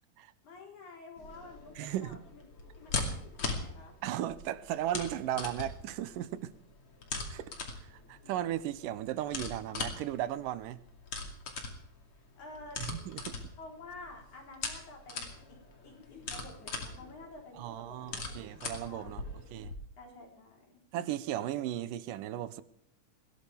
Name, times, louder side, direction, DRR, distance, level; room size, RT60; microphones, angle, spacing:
voice 1, 0.4-2.4 2.8-4.0 12.4-12.8 13.6-18.3 18.8-19.3 20.0-20.8, left 2 dB, 60° left, 5.5 m, -50 dB
sound 1, 1.2-19.7, left 3 dB, 45° left, 3.3 m, -41 dB
voice 2, 1.8-2.2 4.0-6.5 7.3-7.5 7.8-10.8 12.8-13.4 17.5-19.2 19.5-19.7 20.9-22.6, right 12 dB, 85° right, 2.4 m, -36 dB
21.0 x 17.0 x 3.5 m
omnidirectional pair, 3.8 m